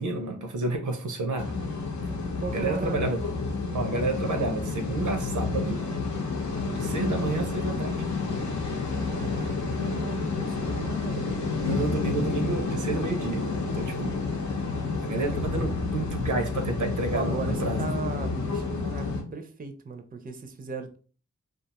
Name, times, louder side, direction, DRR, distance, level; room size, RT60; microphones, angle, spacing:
voice 1, 0.0-1.5 2.5-3.2 3.7-5.8 6.7-8.0 11.6-13.4 13.7-14.2 15.0-17.8, right 2 dB, 85° right, 5 dB, 0.6 m, -30 dB
sound 1, 1.4-19.2, left 4 dB, 75° left, 0.7 m, -30 dB
voice 2, 2.4-3.1 8.9-11.4 17.1-21.0, right 4 dB, 30° right, 7 dB, 0.4 m, -37 dB
2.3 x 2.3 x 2.8 m, 0.39 s
cardioid pair, 45°, 30 cm